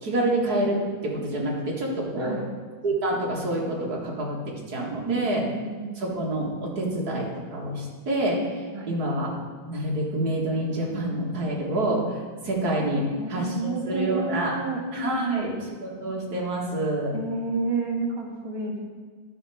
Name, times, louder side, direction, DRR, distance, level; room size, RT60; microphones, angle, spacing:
voice 1, 0.0-2.4 2.8-5.4 6.0-9.3 9.7-14.5 14.9-15.5 15.8-17.1, right 1 dB, 50° right, -3 dB, 2.2 m, -27 dB
voice 2, 2.2-2.5 5.0-6.1 8.7-9.0 13.0-14.8 15.1-15.5 17.1-18.8, right 3 dB, 15° right, -3 dB, 1.3 m, -30 dB
11.0 x 5.8 x 4.9 m, 1.6 s
omnidirectional pair, 2.2 m